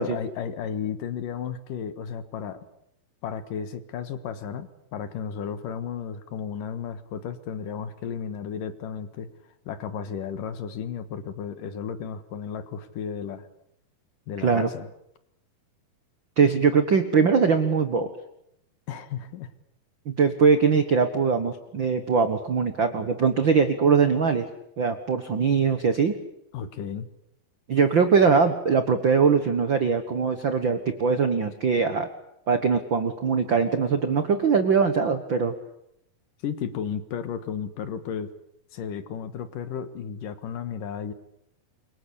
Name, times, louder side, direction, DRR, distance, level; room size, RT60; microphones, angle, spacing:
voice 1, 0.0-2.7 3.2-9.3 9.7-13.5 14.3-14.9 18.9-19.5 26.5-27.1 36.4-38.3 38.7-41.1, left 7 dB, 65° left, 12 dB, 2.9 m, -33 dB
voice 2, 16.4-18.1 20.0-24.5 24.8-26.1 27.7-32.1 32.5-35.5, right 5 dB, 65° right, 9 dB, 1.2 m, -21 dB
27.5 x 23.5 x 8.4 m, 0.77 s
omnidirectional pair, 4.5 m